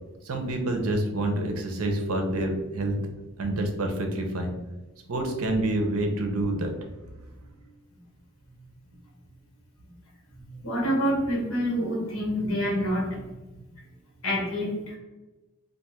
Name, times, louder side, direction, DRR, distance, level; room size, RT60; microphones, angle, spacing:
voice 1, 0.2-3.0 3.4-4.6 5.1-6.7, right 1 dB, 80° right, 4 dB, 0.6 m, -27 dB
voice 2, 10.3-13.6 14.2-15.0, equal, 70° left, -3 dB, 1.1 m, -28 dB
2.6 x 2.4 x 4.1 m, 1.1 s
head